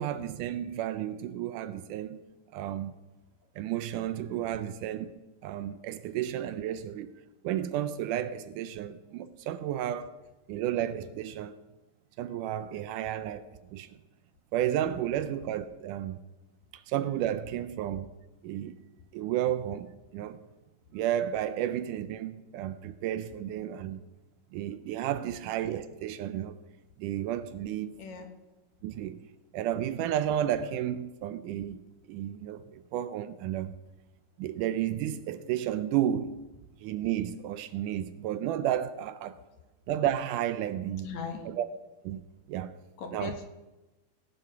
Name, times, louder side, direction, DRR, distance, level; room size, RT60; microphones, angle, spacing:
voice 1, 0.0-2.2 2.5-2.9 3.6-5.1 5.4-7.1 7.4-10.1 10.5-11.5 12.2-13.5 13.7-14.0 14.5-16.2 16.7-18.1 18.4-18.8 19.1-20.4 20.9-24.0 24.5-26.6 27.0-28.0 28.8-29.2 29.5-33.7 34.4-36.3 36.8-39.4 39.9-41.1 41.4-41.7 42.0-42.2 42.5-42.7 43.1-43.4, right 11 dB, 80° right, 2.0 m, -32 dB
voice 2, 41.0-41.5 43.0-43.5, left 5 dB, 65° left, 2.4 m, -38 dB
18.5 x 8.1 x 5.9 m
omnidirectional pair, 3.9 m